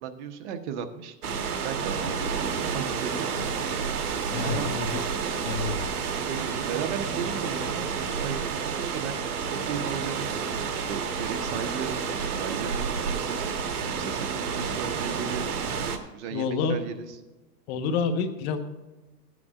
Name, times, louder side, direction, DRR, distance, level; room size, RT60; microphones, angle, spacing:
voice 1, 0.0-1.2 1.6-2.2 2.4-3.4 4.4-4.7 5.2-5.5 6.0-13.4 14.0-15.5 16.1-17.1, right 7 dB, 45° right, 7 dB, 1.0 m, -36 dB
sound 1, 1.2-16.0, right 6 dB, 65° right, 1.5 m, -30 dB
voice 2, 4.3-4.9 5.4-5.8 16.3-16.8 17.7-18.6, left 5 dB, 40° left, 7 dB, 1.3 m, -28 dB
15.5 x 9.4 x 2.5 m, 1.1 s
hypercardioid pair, 130°, 49 cm